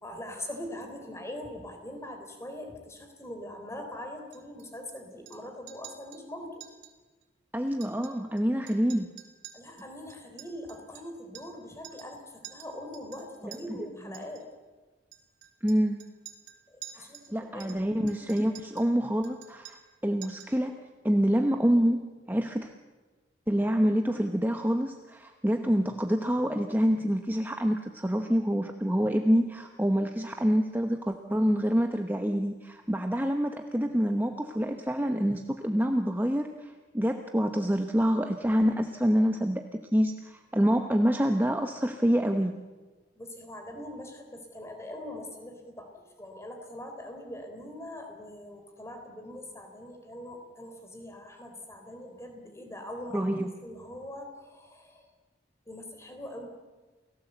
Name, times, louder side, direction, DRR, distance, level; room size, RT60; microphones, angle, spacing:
voice 1, 0.0-6.7 9.5-14.5 16.7-17.2 17.5-17.7 43.2-53.3 53.6-55.1 55.7-56.5, left 1 dB, 15° left, 4 dB, 3.7 m, -42 dB
Chink clink, 4.3-4.9 5.3-5.4 5.7-6.2 6.6-6.9 7.2-7.3 7.7-8.4 8.7-11.6 11.8-12.2 12.4-13.6 14.1-14.4 15.1-17.3 17.6-18.9 19.2-19.9 20.2-20.6, right 11 dB, 80° right, 3.9 m, -49 dB
voice 2, 7.5-9.1 13.4-13.6 15.6-16.0 16.9-22.7 23.5-42.5 53.1-53.5, equal, 10° right, 5 dB, 0.9 m, -27 dB
29.0 x 17.5 x 8.1 m, 1.3 s
head